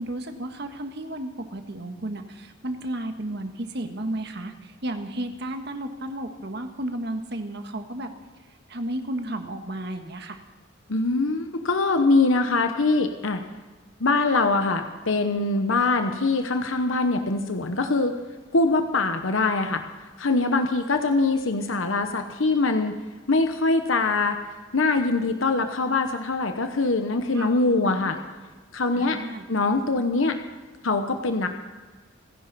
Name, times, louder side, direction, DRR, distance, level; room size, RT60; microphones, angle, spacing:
voice 1, 0.0-8.1 8.7-10.4 27.3-27.5 27.8-28.2 28.9-29.4, right 1 dB, 55° right, 6 dB, 1.5 m, -33 dB
voice 2, 10.9-13.4 14.0-18.2 18.5-19.8 20.2-23.0 23.3-24.4 24.7-28.2 28.7-29.2 29.5-30.4 30.8-31.5, left 3 dB, 80° left, 6 dB, 1.0 m, -23 dB
27.5 x 10.5 x 4.2 m, 1.4 s
head